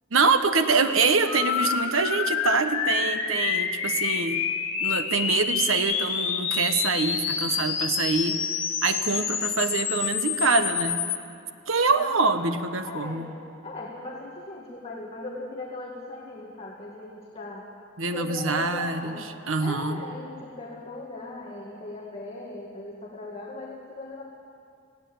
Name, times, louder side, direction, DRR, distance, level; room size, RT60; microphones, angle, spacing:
voice 1, 0.1-4.4 4.8-8.4 8.8-11.0 11.7-13.3 18.0-20.0, right 4 dB, 75° right, 9 dB, 1.2 m, -25 dB
sound 1, 1.3-11.2, left 7 dB, 70° left, 1.8 m, -28 dB
voice 2, 11.9-12.3 12.8-13.2 13.6-17.7 18.1-19.3 19.6-24.2, left 2 dB, 30° left, -2 dB, 2.0 m, -38 dB
18.0 x 16.5 x 8.7 m, 2.4 s
head